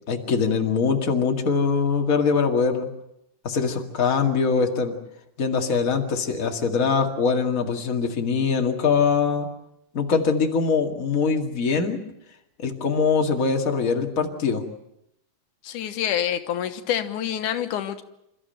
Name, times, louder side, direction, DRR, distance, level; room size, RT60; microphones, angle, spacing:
voice 1, 0.1-2.9 3.4-5.0 5.4-9.5 9.9-12.0 12.6-14.6, left 5 dB, 30° left, 3 dB, 2.1 m, -22 dB
voice 2, 15.6-18.0, left 10 dB, 85° left, 8 dB, 2.6 m, -27 dB
28.0 x 14.0 x 9.2 m, 0.83 s
omnidirectional pair, 3.5 m